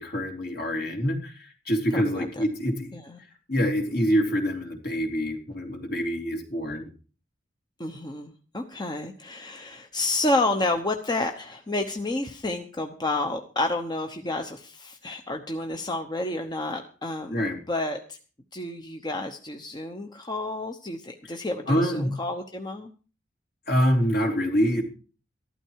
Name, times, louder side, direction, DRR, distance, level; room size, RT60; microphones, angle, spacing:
voice 1, 0.0-2.9 3.5-6.9 17.3-17.6 21.7-22.1 23.7-24.8, equal, 55° left, 3 dB, 3.2 m, -25 dB
voice 2, 1.9-2.4 2.9-3.2 7.8-17.4 17.7-18.2 18.5-22.9, left 2 dB, 20° left, 4 dB, 1.0 m, -30 dB
14.5 x 12.5 x 4.7 m, 0.37 s
head